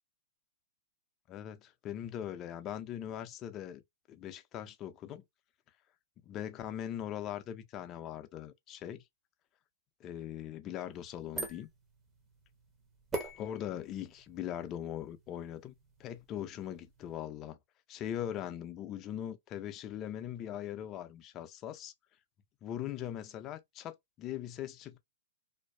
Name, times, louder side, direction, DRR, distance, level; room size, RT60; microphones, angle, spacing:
voice 1, 1.3-3.8 4.1-5.2 6.3-9.0 10.0-11.7 13.4-15.7 16.0-17.6 17.9-21.9 22.6-25.0, left 10 dB, 30° left, 0.5 m, -40 dB
sound 1, 10.9-17.1, right 2 dB, 15° right, 0.7 m, -45 dB
2.5 x 2.3 x 2.2 m
hypercardioid pair, 115°, 0 cm